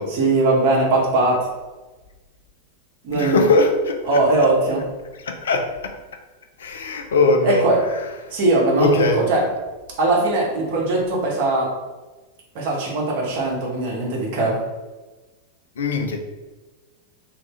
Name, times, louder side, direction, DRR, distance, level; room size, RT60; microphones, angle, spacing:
voice 1, 0.2-1.4 3.0-3.4 4.1-4.8 7.4-7.8 8.3-9.4 10.0-11.7 12.5-14.6, right 2 dB, 45° right, -2 dB, 1.2 m, -20 dB
voice 2, 3.1-4.5 5.2-5.9 6.6-8.4 8.8-9.2 15.8-16.2, left 3 dB, 65° left, 4 dB, 0.5 m, -21 dB
3.6 x 3.1 x 3.2 m, 1.2 s
figure-of-eight pair, 90°, 0 cm